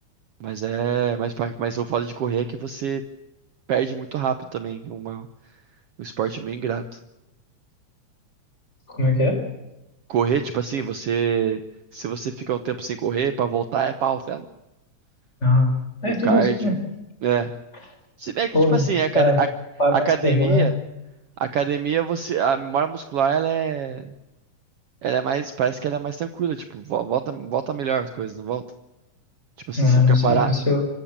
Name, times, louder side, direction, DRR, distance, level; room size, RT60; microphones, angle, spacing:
voice 1, 0.4-3.0 3.7-5.3 6.0-6.8 10.1-11.6 11.9-14.4 16.2-16.7 17.2-17.5 18.2-19.5 19.9-20.7 21.4-24.1 25.0-28.6 29.7-30.5, right 8 dB, 65° right, 10 dB, 1.7 m, -25 dB
voice 2, 8.9-9.4 15.4-15.8 16.0-16.8 18.5-18.9 19.1-19.4 19.8-20.7 29.8-30.8, left 2 dB, 20° left, 5 dB, 4.0 m, -19 dB
26.0 x 15.0 x 8.7 m, 0.97 s
omnidirectional pair, 3.5 m